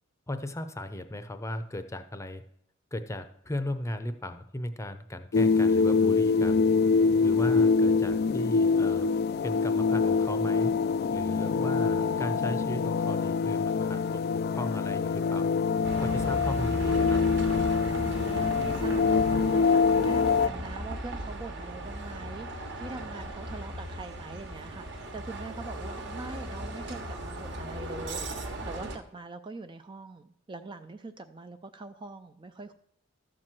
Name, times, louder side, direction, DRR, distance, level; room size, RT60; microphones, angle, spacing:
voice 1, 0.3-2.4 2.9-6.7 7.2-9.1 9.4-10.7 11.1-15.5 16.0-17.2, left 1 dB, 15° left, 10 dB, 0.6 m, -36 dB
sound 1, 5.3-20.5, left 5 dB, 50° left, 0.3 m, -25 dB
Bus, 15.8-29.0, right 1 dB, 60° right, 1.4 m, -37 dB
voice 2, 17.9-32.8, right 3 dB, 25° right, 9 dB, 0.4 m, -43 dB
13.0 x 4.6 x 7.5 m, 0.72 s
head